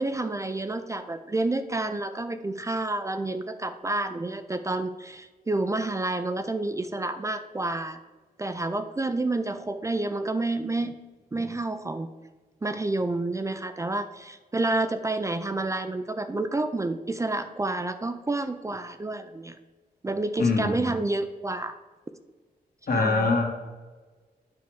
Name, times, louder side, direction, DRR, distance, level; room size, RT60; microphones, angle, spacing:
voice 1, 0.0-8.0 8.4-10.9 11.3-12.1 12.6-19.6 20.0-21.7 22.9-23.3, right 2 dB, 20° right, 9 dB, 0.4 m, -29 dB
voice 2, 20.4-20.9 22.9-23.4, left 3 dB, 65° left, 0 dB, 1.8 m, -23 dB
9.5 x 3.5 x 6.3 m, 1.3 s
wide cardioid pair, 120°, 16 cm